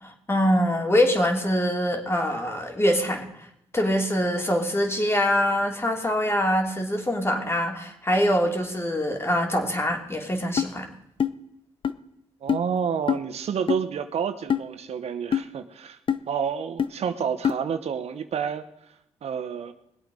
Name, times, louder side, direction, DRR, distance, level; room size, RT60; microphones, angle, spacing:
voice 1, 0.0-3.2 3.7-10.9, equal, 25° left, 2 dB, 3.1 m, -24 dB
sound 1, 10.6-10.7 11.2-11.4 11.8-11.9 12.5-12.6 13.1-13.2 13.7-13.8 14.5-14.7 15.3-15.5 16.1-16.2 16.8-16.9 17.4-17.6, left 8 dB, 50° left, 0.7 m, -23 dB
voice 2, 12.4-16.0 16.3-18.6 19.2-19.7, right 7 dB, 75° right, 9 dB, 0.9 m, -29 dB
21.0 x 8.1 x 5.1 m, 0.76 s
cardioid pair, 60°, 11 cm